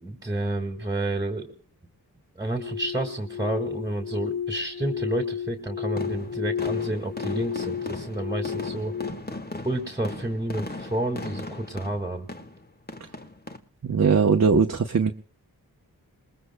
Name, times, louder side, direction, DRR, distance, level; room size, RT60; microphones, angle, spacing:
voice 1, 0.0-1.5 2.4-9.0 9.6-12.3, right 2 dB, 10° right, 3 dB, 1.9 m, -30 dB
sound 1, 2.5-9.1, left 8 dB, 75° left, 1.2 m, -32 dB
sound 2, 6.0-13.6, left 2 dB, 25° left, 1.4 m, -38 dB
voice 2, 13.8-15.1, right 5 dB, 45° right, 4 dB, 0.9 m, -20 dB
27.5 x 20.5 x 2.2 m, 0.42 s
wide cardioid pair, 70°, 37 cm